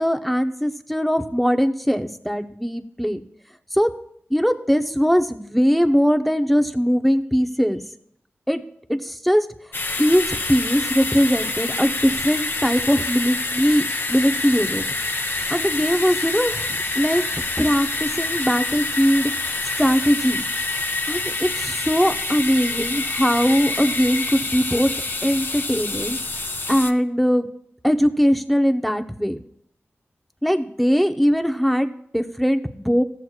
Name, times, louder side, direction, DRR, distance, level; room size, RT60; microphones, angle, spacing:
voice 1, 0.0-3.2 3.7-3.9 4.3-7.8 8.5-8.6 8.9-9.5 10.0-14.9 15.5-16.7 16.9-17.2 17.6-19.5 19.8-20.4 21.1-24.9 25.2-26.2 26.7-27.5 27.8-29.4 30.4-33.0, equal, ahead, 7 dB, 0.8 m, -20 dB
sound 1, 9.7-26.9, left 2 dB, 50° left, 0.8 m, -27 dB
14.5 x 7.7 x 2.4 m, 0.68 s
cardioid pair, 50°, 5 cm